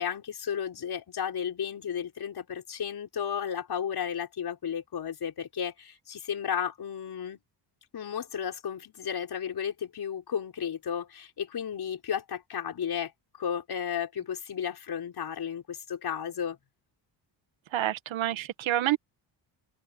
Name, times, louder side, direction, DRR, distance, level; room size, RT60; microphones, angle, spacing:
voice 1, 0.0-7.4 7.9-13.1 13.4-16.6, left 8 dB, 55° left, 5.3 m, -33 dB
voice 2, 17.7-19.0, right 13 dB, 85° right, 1.7 m, -28 dB
open air
cardioid pair, 125°, 45 cm